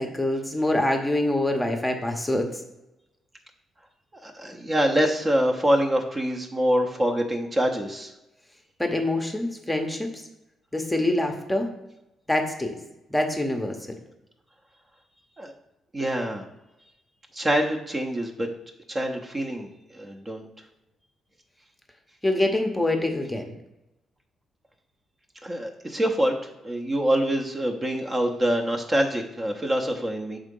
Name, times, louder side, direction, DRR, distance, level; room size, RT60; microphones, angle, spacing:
voice 1, 0.0-2.6 8.8-10.2 10.7-11.7 12.3-12.8 13.1-13.8 22.2-23.5, left 1 dB, 5° left, 3 dB, 0.8 m, -25 dB
voice 2, 4.2-8.1 15.4-15.5 15.9-16.4 17.3-18.5 18.9-20.5 25.4-26.3 26.6-30.4, equal, 25° right, 2 dB, 0.7 m, -25 dB
5.8 x 3.7 x 5.3 m, 0.92 s
cardioid pair, 90°, 0 cm